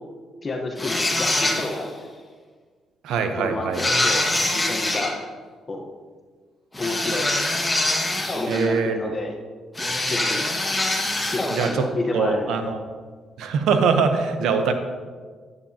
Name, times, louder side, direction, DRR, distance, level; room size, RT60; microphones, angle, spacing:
voice 1, 0.4-1.9 3.4-4.2 4.5-5.2 5.7-5.9 6.8-7.3 8.3-9.4 10.1-10.4 11.3-12.6, left 2 dB, 35° left, 2 dB, 1.1 m, -30 dB
sound 1, 0.8-1.9 3.7-5.1 6.7-8.8 9.8-11.8, left 1 dB, 15° left, 1.6 m, -24 dB
voice 2, 3.0-3.8 8.5-9.0 11.5-11.9 12.1-12.8 13.4-14.7, right 5 dB, 80° right, 7 dB, 0.8 m, -22 dB
9.6 x 9.1 x 2.9 m, 1.5 s
supercardioid pair, 65°, 0 cm